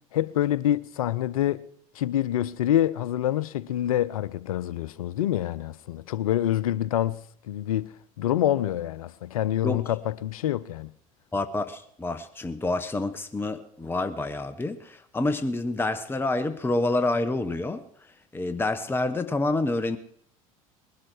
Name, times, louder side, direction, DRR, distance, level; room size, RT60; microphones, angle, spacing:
voice 1, 0.1-1.6 1.9-7.2 7.5-10.9, left 12 dB, 75° left, 0.6 m, -26 dB
voice 2, 11.3-20.0, left 2 dB, 10° left, 0.9 m, -28 dB
20.0 x 12.0 x 4.7 m
figure-of-eight pair, 70°, 18 cm